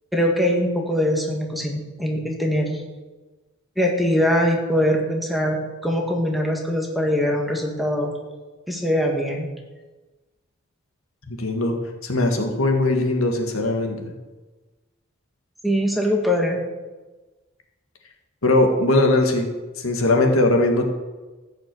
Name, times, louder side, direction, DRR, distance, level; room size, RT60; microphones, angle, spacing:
voice 1, 0.1-2.8 3.8-5.6 5.8-8.1 8.7-9.5 15.6-16.6, equal, ahead, 0 dB, 1.8 m, -22 dB
voice 2, 11.3-11.7 12.0-14.1 18.4-19.5 19.8-20.9, left 2 dB, 75° left, 3 dB, 1.9 m, -20 dB
14.5 x 6.4 x 7.8 m, 1.2 s
head